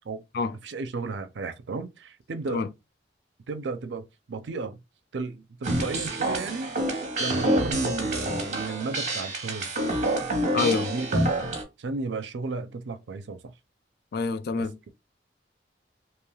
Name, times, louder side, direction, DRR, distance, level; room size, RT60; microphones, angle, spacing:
voice 1, 0.6-2.6 3.5-4.8 5.1-6.8 7.2-9.9 10.5-11.3 11.8-13.5 14.6-14.7, right 4 dB, 75° right, 0.5 m, -33 dB
sound 1, 5.6-11.6, right 1 dB, 40° right, 0.9 m, -27 dB
voice 2, 10.5-10.9 14.1-14.8, left 4 dB, 60° left, 0.3 m, -26 dB
3.2 x 2.9 x 2.3 m
head